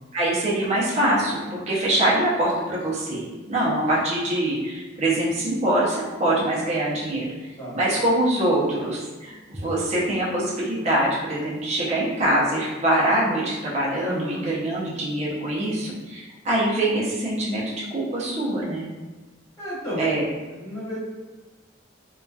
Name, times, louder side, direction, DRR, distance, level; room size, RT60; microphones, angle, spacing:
voice 1, 0.1-7.3 7.7-18.9 20.0-20.2, right 1 dB, 35° right, -6 dB, 0.5 m, -24 dB
voice 2, 14.0-14.4 19.6-20.2 20.5-21.0, equal, 15° left, -10 dB, 0.9 m, -32 dB
2.6 x 2.2 x 2.2 m, 1.2 s
head